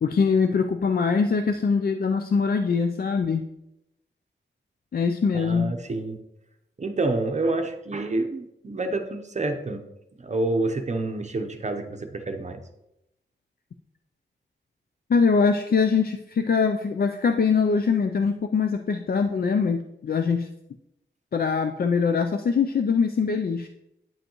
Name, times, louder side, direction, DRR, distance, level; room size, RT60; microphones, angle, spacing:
voice 1, 0.0-3.4 4.9-5.7 15.1-20.5 21.3-23.7, left 5 dB, 50° left, 6 dB, 0.4 m, -23 dB
voice 2, 5.3-6.2 6.8-9.8 10.2-12.6, right 2 dB, 35° right, 6 dB, 0.7 m, -28 dB
9.1 x 7.7 x 3.0 m, 0.86 s
wide cardioid pair, 140°, 19 cm